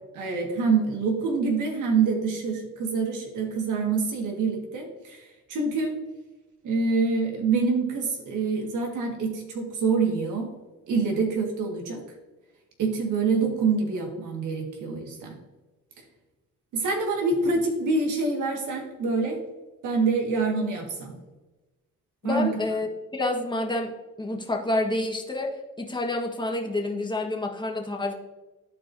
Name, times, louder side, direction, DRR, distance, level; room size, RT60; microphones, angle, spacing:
voice 1, 0.1-6.0 6.6-10.5 10.9-12.0 12.8-15.4 16.7-19.4 19.8-21.2 22.2-22.5, right 4 dB, 85° right, 1 dB, 1.9 m, -26 dB
voice 2, 22.2-22.9 23.1-23.9 24.2-28.1, left 2 dB, 15° left, 1 dB, 1.5 m, -28 dB
13.0 x 4.6 x 2.7 m, 1.1 s
cardioid pair, 90°, 30 cm